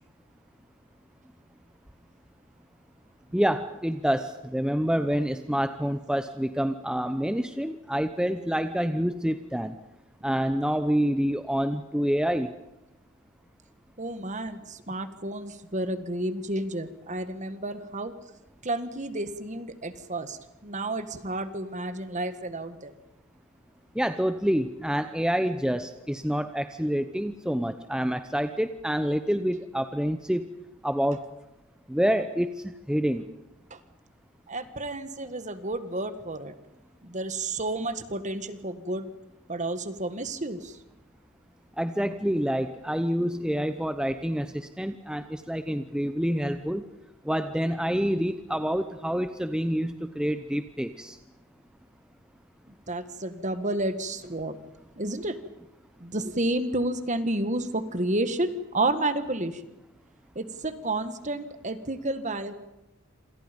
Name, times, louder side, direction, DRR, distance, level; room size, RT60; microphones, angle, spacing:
voice 1, 3.3-9.7 10.2-12.5 23.9-30.5 30.8-31.2 31.9-33.3 41.8-46.8 47.2-51.2, equal, 5° right, 9 dB, 0.8 m, -27 dB
voice 2, 14.0-18.1 18.6-22.9 33.7-33.8 34.5-36.5 37.0-39.1 39.5-40.8 52.9-54.6 55.0-55.4 56.0-59.6 60.4-62.5, right 2 dB, 35° right, 10 dB, 1.7 m, -31 dB
27.5 x 27.0 x 5.3 m, 0.97 s
head